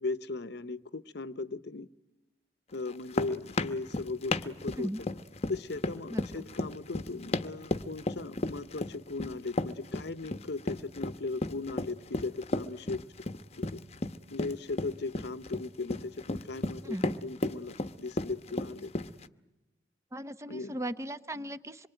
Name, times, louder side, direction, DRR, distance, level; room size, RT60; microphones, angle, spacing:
voice 1, 0.0-1.9 2.7-5.1 5.5-13.0 13.6-13.8 14.3-18.9 20.5-20.8, left 3 dB, 65° left, 0.9 m, -37 dB
sound 1, 2.9-19.3, left 2 dB, 40° left, 1.0 m, -34 dB
voice 2, 6.1-6.4 16.8-17.2 20.1-21.9, equal, 15° right, 0.9 m, -37 dB
26.0 x 23.0 x 9.1 m
head